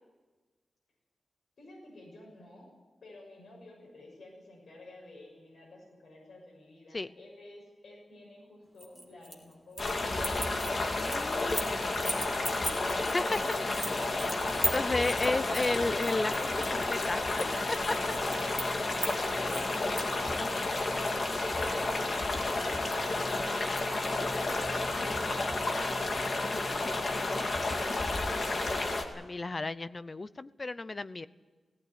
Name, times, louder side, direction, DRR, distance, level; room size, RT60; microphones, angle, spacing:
voice 1, 1.6-2.7 3.0-10.0 19.3-23.8, left 2 dB, 75° left, -2 dB, 6.8 m, -52 dB
sound 1, 8.8-9.9 10.2-11.7 12.1-20.1, right 1 dB, 5° left, 3.2 m, -37 dB
sound 2, 9.8-29.0, left 2 dB, 50° left, 2.3 m, -31 dB
voice 2, 11.0-11.7 13.1-13.2 14.6-17.2 17.7-18.0 19.5-19.9 29.1-31.3, left 3 dB, 35° left, 15 dB, 0.7 m, -33 dB
18.0 x 17.5 x 9.6 m, 1.3 s
wide cardioid pair, 115°, 0 cm